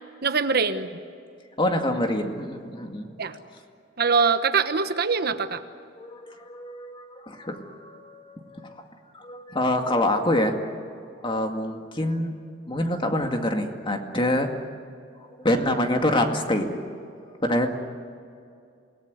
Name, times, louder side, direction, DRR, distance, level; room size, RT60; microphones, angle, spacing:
voice 1, 0.2-0.9 3.2-3.4 4.0-5.6, right 5 dB, 55° right, 9 dB, 1.2 m, -23 dB
voice 2, 1.6-3.1 6.0-8.8 9.1-10.6 11.2-12.4 12.7-14.5 15.4-16.8 17.3-17.7, left 1 dB, 25° left, 4 dB, 2.2 m, -26 dB
27.5 x 19.0 x 9.6 m, 2.4 s
head